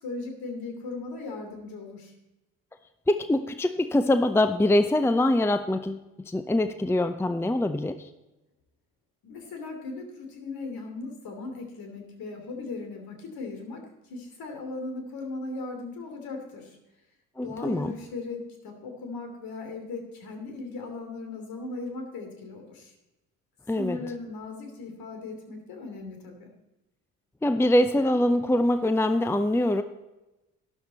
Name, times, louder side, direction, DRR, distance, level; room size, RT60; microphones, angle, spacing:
voice 1, 0.0-2.1 9.2-16.8 17.4-22.9 23.7-26.5, left 3 dB, 60° left, 4 dB, 3.0 m, -38 dB
voice 2, 3.1-8.1 17.4-17.9 23.7-24.0 27.4-29.8, left 1 dB, 5° left, 10 dB, 0.7 m, -24 dB
12.5 x 11.0 x 4.2 m, 1.0 s
hypercardioid pair, 50°, 40 cm